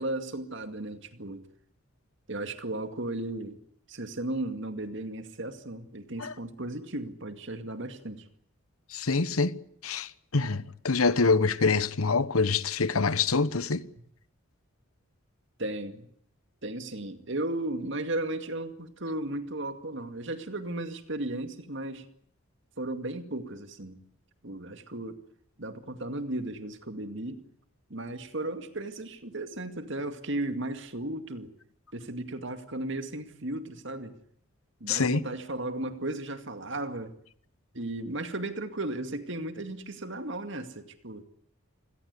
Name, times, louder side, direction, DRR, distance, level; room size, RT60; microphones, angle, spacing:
voice 1, 0.0-1.5 2.3-3.6 3.9-8.2 15.6-16.1 16.6-22.1 22.8-24.0 24.4-25.2 25.6-27.4 27.9-31.5 31.9-34.2 34.8-37.1 37.7-41.2, right 1 dB, 55° right, 2.3 m, -35 dB
voice 2, 8.9-9.6 9.8-13.8 34.9-35.2, left 4 dB, 85° left, 1.1 m, -25 dB
27.5 x 17.0 x 9.6 m
head